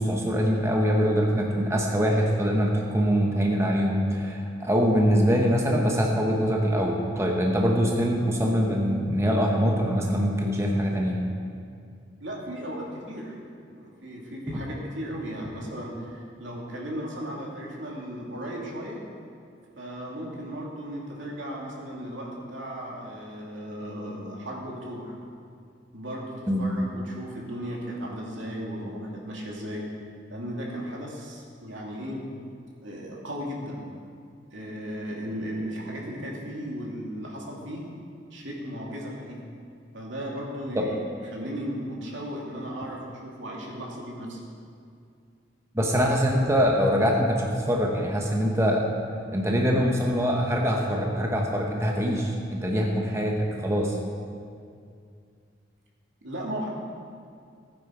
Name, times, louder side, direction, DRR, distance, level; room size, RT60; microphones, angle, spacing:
voice 1, 0.0-11.2 14.5-14.6 26.5-26.7 40.7-40.9 45.7-48.8 49.3-54.0, equal, 15° right, 0 dB, 1.0 m, -23 dB
voice 2, 12.2-13.4 13.7-19.0 19.8-25.1 25.9-29.9 30.3-32.3 32.8-33.8 34.5-37.9 38.3-39.4 39.9-41.0 41.3-44.4 56.2-56.7, equal, 80° right, -3 dB, 2.6 m, -36 dB
16.0 x 9.4 x 4.6 m, 2.3 s
head